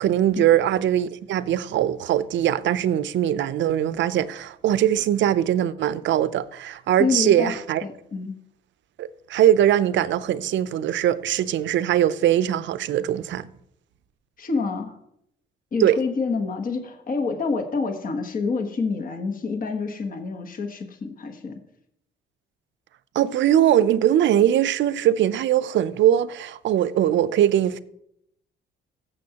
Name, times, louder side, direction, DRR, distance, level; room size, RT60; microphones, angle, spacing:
voice 1, 0.0-7.8 9.0-13.5 15.8-16.0 23.1-27.8, right 11 dB, 70° right, 0.5 m, -21 dB
voice 2, 7.0-7.6 7.8-8.4 14.4-15.0 15.7-21.6, left 4 dB, 45° left, 1.2 m, -27 dB
15.0 x 6.9 x 2.9 m
cardioid pair, 90°, 20 cm